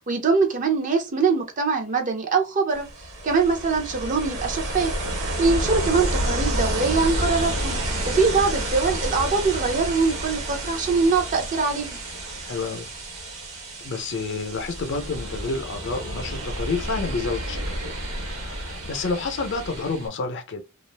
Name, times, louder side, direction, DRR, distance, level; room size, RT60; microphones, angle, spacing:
voice 1, 0.1-2.9 3.2-4.9 5.4-7.8 8.1-12.0, right 4 dB, 40° right, 0.6 m, -23 dB
Ocean, 2.7-20.1, right 1 dB, 85° right, 1.1 m, -30 dB
voice 2, 12.4-12.9 13.8-17.9 18.3-20.6, left 4 dB, 60° left, 0.6 m, -29 dB
2.4 x 2.3 x 3.2 m
head